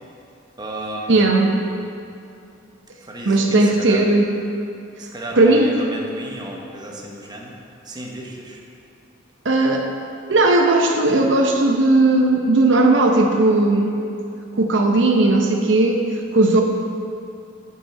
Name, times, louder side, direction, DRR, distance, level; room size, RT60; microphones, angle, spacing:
voice 1, 0.6-1.6 3.0-4.0 5.0-7.6 7.8-8.6, right 1 dB, 20° right, -1 dB, 1.0 m, -33 dB
voice 2, 1.1-1.5 3.3-4.3 5.4-5.7 9.4-9.9 10.3-14.0 14.5-16.0 16.3-16.6, right 2 dB, 65° right, 2 dB, 0.8 m, -16 dB
8.1 x 5.5 x 7.5 m, 2.6 s
head